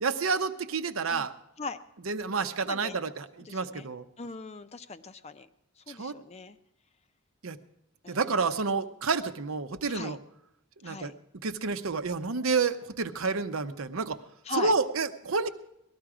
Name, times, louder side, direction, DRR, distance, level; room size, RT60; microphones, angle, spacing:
voice 1, 0.0-1.3 2.1-4.0 5.9-6.1 7.4-7.6 8.1-10.2 10.8-11.1 11.4-14.2 14.5-15.5, right 4 dB, 80° right, 9 dB, 0.8 m, -29 dB
voice 2, 2.7-3.0 3.4-3.9 4.2-5.5 5.9-6.6 8.0-8.6 9.9-10.2 10.8-11.1 14.4-14.7, left 3 dB, 30° left, 10 dB, 0.6 m, -39 dB
19.0 x 13.0 x 4.9 m, 0.82 s
head